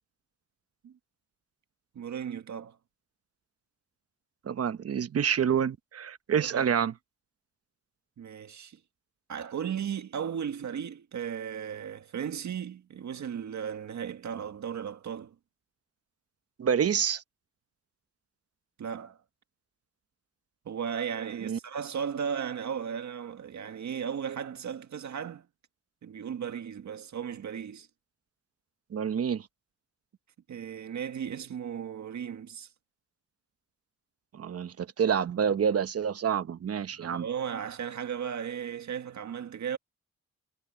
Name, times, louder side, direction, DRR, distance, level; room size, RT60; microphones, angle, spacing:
voice 1, 1.9-2.8 6.3-6.7 8.2-8.8 9.3-15.3 18.8-19.2 20.6-25.4 26.0-27.9 30.5-32.7 36.9-39.8, right 8 dB, 75° right, 1.8 m, -36 dB
voice 2, 4.4-6.9 16.6-17.2 21.4-21.6 28.9-29.5 34.3-37.3, right 7 dB, 55° right, 1.0 m, -28 dB
wide cardioid pair, 125°, 29 cm